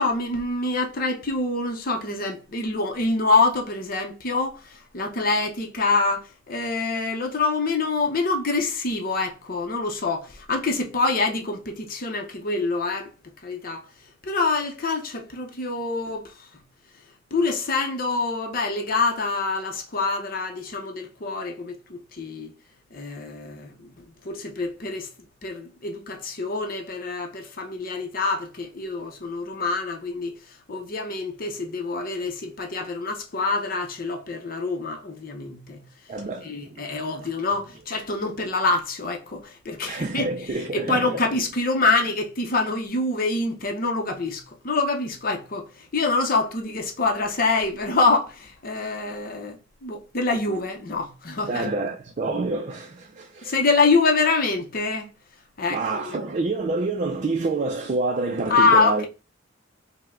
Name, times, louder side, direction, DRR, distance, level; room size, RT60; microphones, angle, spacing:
voice 1, 0.0-13.1 13.4-13.9 14.2-16.5 17.3-22.5 22.9-25.1 25.4-35.8 36.4-51.7 53.4-55.1 55.6-56.2 58.5-59.1, left 3 dB, 50° left, 0.7 m, -26 dB
voice 2, 36.1-37.1 39.9-41.2 51.5-53.5 55.7-59.0, right 3 dB, 40° right, 0.4 m, -27 dB
5.4 x 2.1 x 3.6 m
head